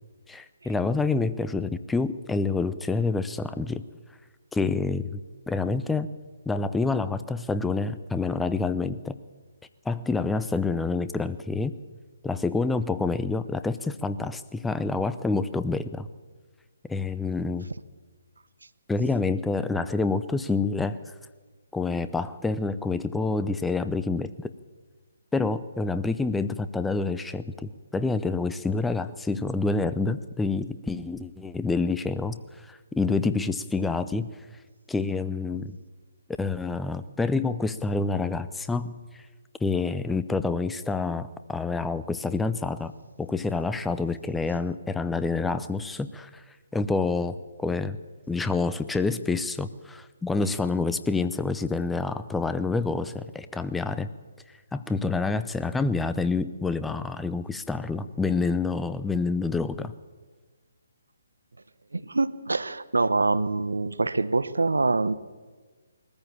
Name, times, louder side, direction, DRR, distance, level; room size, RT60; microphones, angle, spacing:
voice 1, 0.3-3.8 4.5-5.2 5.5-6.1 6.5-9.1 9.9-11.8 12.2-16.1 16.9-17.7 18.9-21.0 21.7-24.5 25.3-34.3 34.9-35.8 36.4-39.2 39.6-42.9 43.2-46.4 46.7-48.0 48.3-54.1 54.7-59.9, left 3 dB, 5° left, 12 dB, 0.6 m, -27 dB
voice 2, 61.9-65.1, right 3 dB, 80° right, 15 dB, 1.1 m, -25 dB
21.5 x 14.0 x 8.8 m, 1.4 s
figure-of-eight pair, 140°, 0 cm